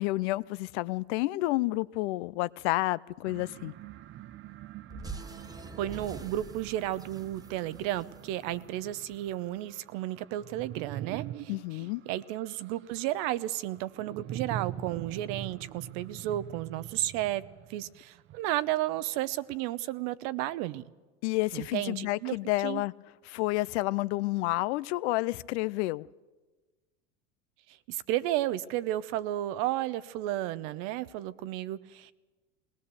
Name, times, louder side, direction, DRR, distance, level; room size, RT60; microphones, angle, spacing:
voice 1, 0.0-3.7 11.5-12.0 21.2-22.9 23.3-26.1, left 19 dB, 70° left, 0.6 m, -30 dB
sound 1, 3.2-18.7, right 12 dB, 35° right, 0.6 m, -44 dB
sound 2, 4.9-9.3, right 3 dB, 10° right, 1.0 m, -45 dB
voice 2, 5.8-17.4 17.7-20.8 21.5-22.4 22.6-22.8 27.7-32.1, right 14 dB, 60° right, 0.9 m, -33 dB
20.5 x 18.5 x 6.9 m
supercardioid pair, 105°, 35 cm